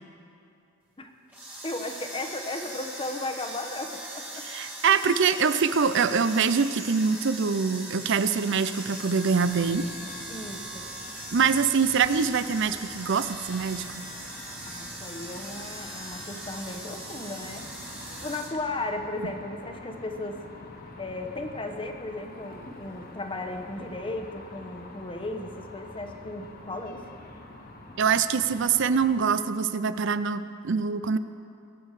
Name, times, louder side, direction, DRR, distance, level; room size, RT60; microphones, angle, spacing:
sound 1, 1.3-18.5, right 1 dB, 10° right, 1.8 m, -40 dB
voice 1, 1.6-4.4 10.3-10.9 14.6-17.7 18.2-20.4 21.0-27.0, left 2 dB, 25° left, 5 dB, 1.0 m, -35 dB
voice 2, 4.4-9.9 11.3-14.0 28.0-31.2, right 6 dB, 60° right, 13 dB, 0.5 m, -24 dB
sound 2, 9.4-29.2, left 2 dB, 45° left, 1.5 m, -46 dB
22.0 x 9.1 x 4.8 m, 2.6 s
head